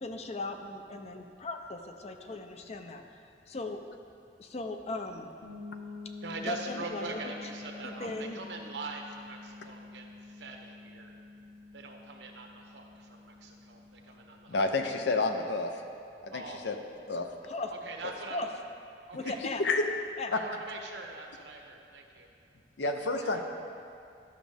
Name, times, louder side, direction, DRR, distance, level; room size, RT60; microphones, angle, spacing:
voice 1, 0.0-3.2 3.5-3.8 4.4-5.3 6.4-7.3 7.6-8.4 17.4-17.7 18.3-18.5 19.1-19.6 20.2-20.3, left 2 dB, 40° left, 6 dB, 0.5 m, -38 dB
sound 1, 5.4-15.1, left 3 dB, 55° left, 1.3 m, -47 dB
voice 2, 6.2-11.1 11.7-14.6 14.8-14.9 16.3-16.6 17.7-18.4 19.1-19.4 20.3-22.3 23.0-23.4, right 3 dB, 80° right, 2 dB, 1.0 m, -43 dB
voice 3, 14.5-15.8 16.2-16.8 17.1-17.3 19.6-19.8 20.3-20.4 22.8-23.4, left 3 dB, 75° left, 5 dB, 0.7 m, -29 dB
12.0 x 6.1 x 3.4 m, 2.4 s
head